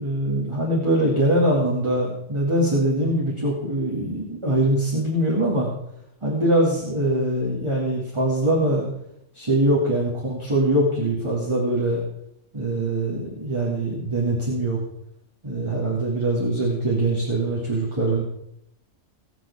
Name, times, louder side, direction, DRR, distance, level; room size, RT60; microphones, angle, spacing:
voice 1, 0.0-5.7 6.2-8.9 9.3-12.0 12.5-14.8 15.4-18.2, right 1 dB, 20° right, -5 dB, 2.5 m, -23 dB
20.5 x 7.7 x 3.6 m, 0.79 s
omnidirectional pair, 1.3 m